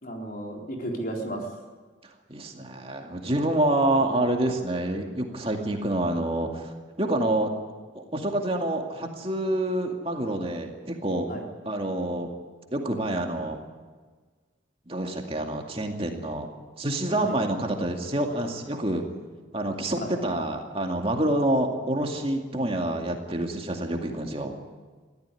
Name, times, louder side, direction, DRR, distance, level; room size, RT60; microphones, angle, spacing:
voice 1, 0.0-1.5 11.3-11.5 17.2-17.4 20.0-20.1, right 1 dB, 45° left, 1 dB, 3.8 m, -33 dB
voice 2, 2.3-7.5 7.9-11.3 11.7-12.3 12.7-13.6 14.9-16.5 16.8-19.0 19.5-24.6, right 1 dB, 30° right, 2 dB, 2.3 m, -27 dB
23.0 x 14.5 x 9.9 m, 1.4 s
head